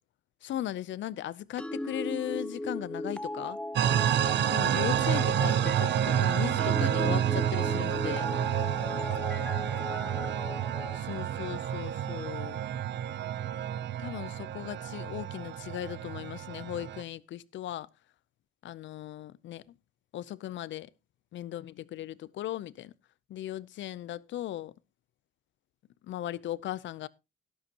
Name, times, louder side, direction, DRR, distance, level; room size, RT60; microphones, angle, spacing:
voice 1, 0.4-3.6 4.5-8.3 10.9-12.6 14.0-17.9 18.6-19.6 20.1-20.9 21.3-22.9 23.3-24.7 26.0-27.1, left 12 dB, 70° left, 0.6 m, -37 dB
sound 1, 1.6-11.0, left 1 dB, 5° left, 0.5 m, -37 dB
sound 2, 3.8-17.0, right 10 dB, 65° right, 0.6 m, -29 dB
12.0 x 12.0 x 2.9 m
cardioid pair, 90°, 20 cm